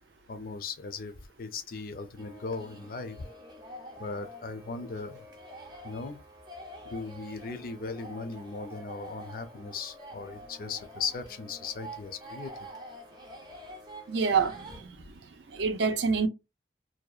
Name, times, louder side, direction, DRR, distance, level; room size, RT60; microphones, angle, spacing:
voice 1, 0.3-1.1 1.4-3.2 4.0-5.2 5.8-6.2 6.8-12.5, left 4 dB, 55° left, 0.4 m, -38 dB
sound 1, 2.2-14.8, equal, 25° right, 0.6 m, -47 dB
voice 2, 14.1-15.2 15.5-16.3, right 5 dB, 85° right, 0.5 m, -27 dB
2.7 x 2.1 x 2.3 m
head